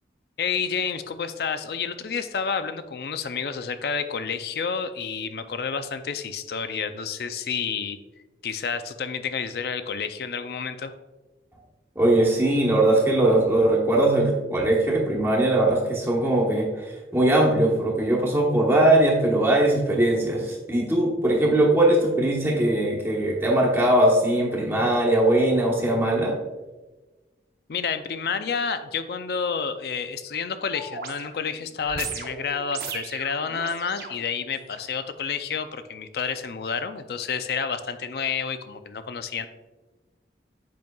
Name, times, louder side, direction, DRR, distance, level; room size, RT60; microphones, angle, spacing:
voice 1, 0.4-8.0 8.4-10.9 27.7-39.5, left 6 dB, 60° left, 10 dB, 0.4 m, -29 dB
voice 2, 11.9-26.3, right 1 dB, 15° right, -3 dB, 1.1 m, -20 dB
sound 1, 30.7-34.8 35.5-35.6, right 4 dB, 55° right, 0.7 m, -38 dB
7.7 x 5.3 x 2.3 m, 1.2 s
head